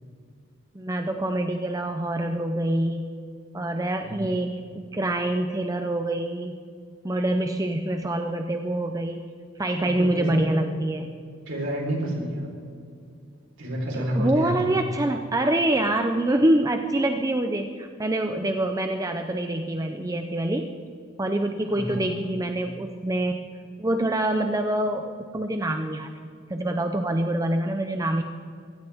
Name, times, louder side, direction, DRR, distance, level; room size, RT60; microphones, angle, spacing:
voice 1, 0.7-3.1 3.5-6.6 7.0-9.2 9.6-11.1 13.9-20.7 21.2-28.2, right 1 dB, 15° right, 5 dB, 0.5 m, -26 dB
voice 2, 9.8-10.5 11.5-12.5 13.6-14.7 21.7-22.1, right 1 dB, 70° right, -1 dB, 4.2 m, -29 dB
23.5 x 16.0 x 3.6 m, 2.3 s
head